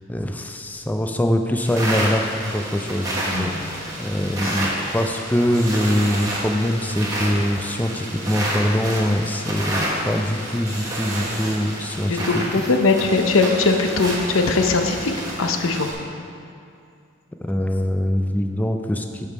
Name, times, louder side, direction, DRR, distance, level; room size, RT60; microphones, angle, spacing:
voice 1, 0.1-12.7 17.4-19.3, equal, 10° left, 5 dB, 0.4 m, -23 dB
sound 1, 1.6-15.9, right 1 dB, 20° right, 1.3 m, -29 dB
voice 2, 3.3-3.7 4.4-4.5 12.1-15.1 15.4-15.9, left 3 dB, 85° left, 5 dB, 0.7 m, -20 dB
11.5 x 5.3 x 4.1 m, 2.5 s
head